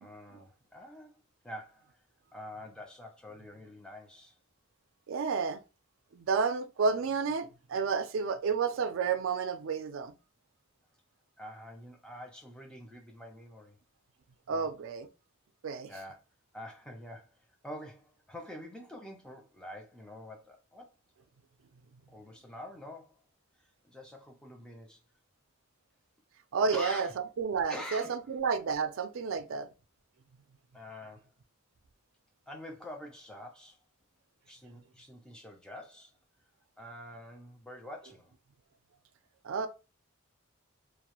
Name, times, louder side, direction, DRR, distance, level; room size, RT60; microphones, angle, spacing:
voice 1, 0.0-2.0 2.3-4.4 11.4-13.8 14.5-14.7 15.9-16.2 16.5-20.9 22.1-23.2 23.8-25.0 26.7-27.1 27.7-28.4 30.7-31.3 32.5-33.8 34.5-36.1 36.8-38.3, left 1 dB, 5° left, 0.4 m, -46 dB
voice 2, 5.1-5.6 6.1-10.1 14.5-15.1 15.6-15.9 26.5-27.1 27.4-29.7 39.4-39.7, right 5 dB, 65° right, 0.3 m, -31 dB
2.3 x 2.0 x 2.9 m
head